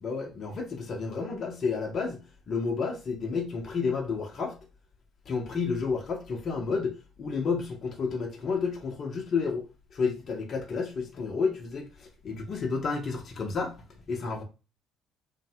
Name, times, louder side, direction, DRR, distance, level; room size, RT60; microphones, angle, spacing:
voice 1, 0.0-2.2 2.5-4.6 5.3-9.6 9.9-13.8 14.1-14.4, left 5 dB, 50° left, 0.6 m, -31 dB
2.6 x 2.1 x 2.7 m
hypercardioid pair, 55°, 0 cm